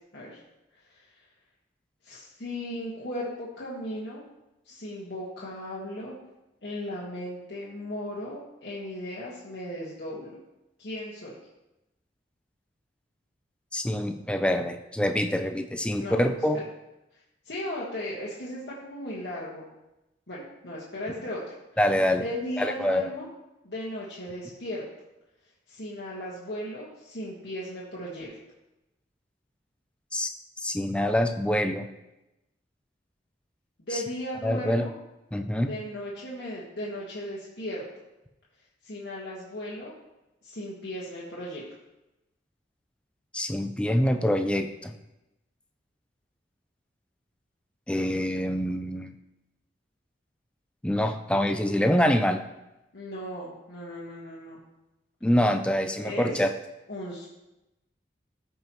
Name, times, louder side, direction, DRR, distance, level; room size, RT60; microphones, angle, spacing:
voice 1, 0.7-1.2 2.0-4.2 4.6-6.2 6.6-10.4 10.8-11.4 15.9-16.2 16.5-16.6 17.1-19.7 20.3-21.4 22.2-23.3 23.6-24.8 25.7-28.3 33.8-34.9 35.6-38.0 38.8-39.9 40.4-41.7 52.9-54.6 56.0-56.5 56.9-57.3, left 1 dB, 75° left, -7 dB, 1.5 m, -36 dB
voice 2, 13.7-16.6 21.8-22.2 22.6-23.1 30.1-30.3 30.6-31.9 34.4-34.8 35.3-35.7 43.3-44.9 47.9-49.1 50.8-52.4 55.2-56.5, left 1 dB, 5° left, 6 dB, 0.5 m, -25 dB
14.0 x 5.4 x 3.0 m, 0.95 s
head